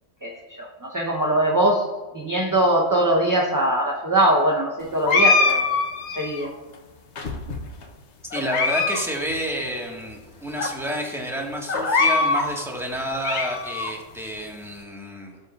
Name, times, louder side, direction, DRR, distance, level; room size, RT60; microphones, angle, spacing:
voice 1, 0.9-1.8 2.2-5.6 6.2-6.5, right 1 dB, 20° right, -1 dB, 0.8 m, -21 dB
sound 1, 5.1-6.5 7.2-7.8 8.3-9.0 9.3-9.4 10.1-10.2 10.6-10.7 11.7-12.5 13.0-13.9, left 3 dB, 65° left, 1.2 m, -22 dB
voice 2, 8.3-15.5, equal, ahead, -1 dB, 1.5 m, -30 dB
17.0 x 7.3 x 2.4 m, 1.3 s
omnidirectional pair, 1.3 m